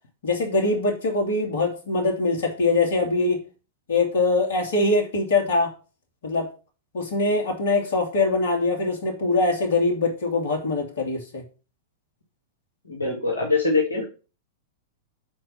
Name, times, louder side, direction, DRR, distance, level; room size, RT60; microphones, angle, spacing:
voice 1, 0.2-3.4 3.9-5.7 6.2-6.5 6.9-11.4, left 3 dB, 65° left, 3 dB, 2.6 m, -23 dB
voice 2, 12.9-14.0, left 3 dB, 80° left, -2 dB, 1.8 m, -23 dB
7.1 x 4.5 x 5.9 m, 0.34 s
figure-of-eight pair, 100°, 0 cm